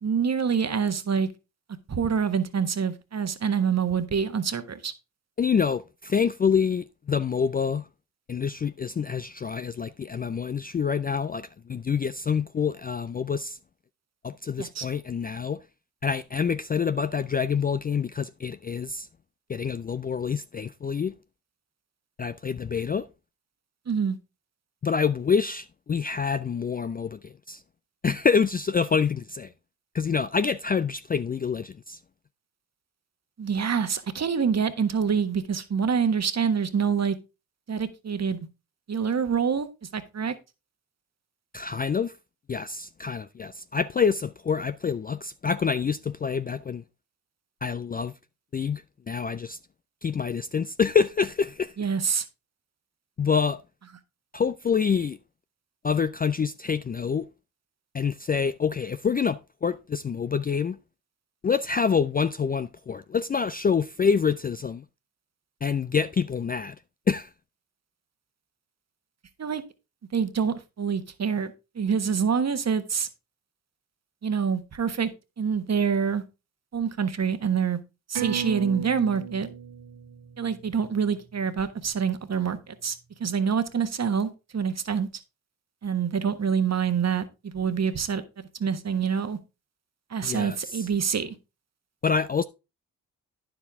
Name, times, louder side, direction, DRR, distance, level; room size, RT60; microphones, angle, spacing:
voice 1, 0.0-1.3 1.9-4.9 14.6-14.9 23.9-24.2 33.4-37.2 37.7-38.5 38.9-40.3 51.8-52.2 69.4-69.6 70.1-73.1 74.2-75.1 75.4-76.2 76.7-77.8 78.1-79.5 80.4-85.1 85.8-88.2 88.6-89.4 90.1-91.3, right 6 dB, 40° right, 1.3 m, -26 dB
voice 2, 5.4-7.9 8.3-13.6 14.2-15.6 16.0-19.1 19.5-21.1 22.2-23.1 24.8-27.6 28.0-29.5 29.9-32.0 41.5-42.1 42.5-46.8 47.6-48.1 48.5-49.6 50.0-51.7 53.2-53.6 54.3-55.2 55.8-57.3 57.9-60.8 61.4-64.8 65.6-66.7 67.1-67.3 90.2-90.8 92.0-92.4, left 6 dB, 25° left, 0.4 m, -26 dB
sound 1, 78.1-83.1 83.4-83.5, right 10 dB, 75° right, 2.1 m, -38 dB
9.8 x 7.1 x 3.6 m
supercardioid pair, 50°, 41 cm